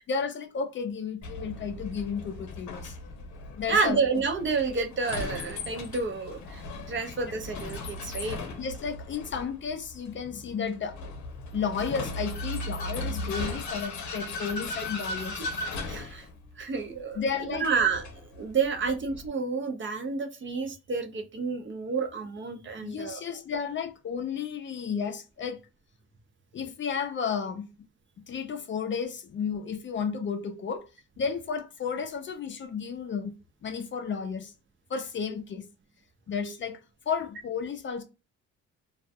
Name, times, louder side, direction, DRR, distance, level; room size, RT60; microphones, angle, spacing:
voice 1, 0.1-3.0 3.6-4.0 8.6-11.2 11.5-15.5 17.1-17.7 22.8-25.6 26.5-27.7 28.3-30.9 31.2-33.3 33.6-34.5 34.9-35.7 36.3-36.8 37.1-38.0, left 6 dB, 40° left, 0.4 m, -32 dB
Vehicle, 1.2-19.3, left 2 dB, 70° left, 0.7 m, -38 dB
voice 2, 3.7-6.6 6.9-8.5 15.9-16.3 16.6-17.2 17.5-18.1 18.4-23.2, right 4 dB, 40° right, 0.6 m, -29 dB
2.3 x 2.2 x 2.6 m
cardioid pair, 90°, 30 cm